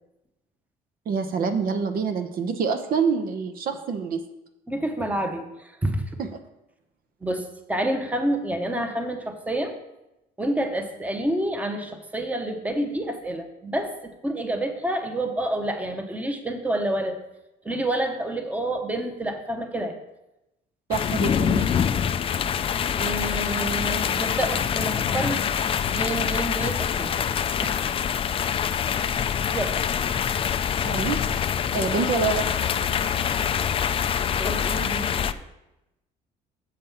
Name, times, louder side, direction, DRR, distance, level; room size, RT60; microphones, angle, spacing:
voice 1, 1.1-4.2 6.2-6.3 20.9-21.8 30.8-31.2 31.7-32.5, right 5 dB, 60° right, 8 dB, 0.8 m, -26 dB
voice 2, 4.7-6.1 7.2-7.4 7.7-9.7 10.4-17.2 17.6-19.9 23.0-25.4 25.9-27.1 27.6-27.7 29.5-29.8 34.4-35.4, right 1 dB, 10° right, 6 dB, 0.9 m, -28 dB
sound 1, 20.9-35.3, left 8 dB, 35° left, 0.3 m, -25 dB
7.2 x 5.2 x 5.6 m, 0.92 s
cardioid pair, 110°, 17 cm